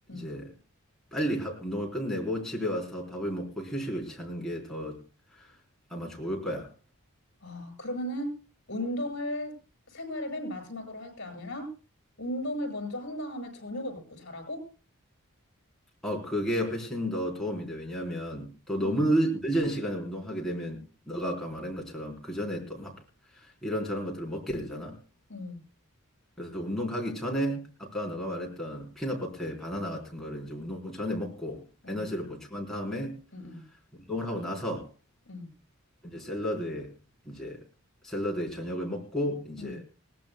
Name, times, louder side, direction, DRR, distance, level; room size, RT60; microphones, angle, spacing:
voice 1, 0.1-0.5 1.1-5.0 5.3-5.5 5.9-6.7 16.0-20.8 21.1-23.0 23.3-25.0 26.4-33.2 34.1-34.9 36.0-36.9 37.2-37.6 38.0-39.8, equal, ahead, -2 dB, 4.0 m, -32 dB
voice 2, 7.4-8.3 8.7-9.6 9.9-11.7 12.2-14.7 18.8-19.0 25.3-25.6 31.8-32.0 33.3-33.7 35.3-35.5 39.6-39.8, left 1 dB, 50° left, 4 dB, 7.0 m, -36 dB
21.0 x 18.0 x 2.3 m, 0.34 s
head